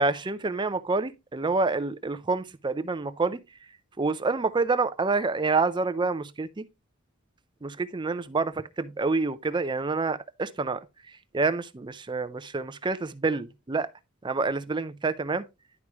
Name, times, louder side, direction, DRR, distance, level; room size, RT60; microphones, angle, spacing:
voice 1, 0.0-3.4 4.0-6.7 7.6-10.8 11.3-13.9 14.2-15.5, right 3 dB, 20° right, 0.5 m, -27 dB
11.0 x 4.8 x 2.9 m
head